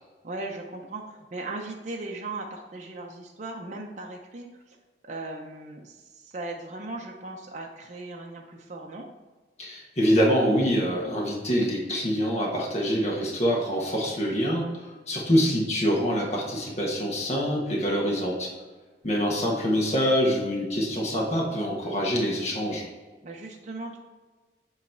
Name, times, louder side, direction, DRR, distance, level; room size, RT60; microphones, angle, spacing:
voice 1, 0.2-4.8 5.0-9.1 23.2-24.0, right 2 dB, 40° right, 0 dB, 0.6 m, -38 dB
voice 2, 9.6-18.5 19.0-22.8, equal, 40° left, -2 dB, 1.2 m, -25 dB
7.9 x 3.1 x 4.4 m, 1.3 s
head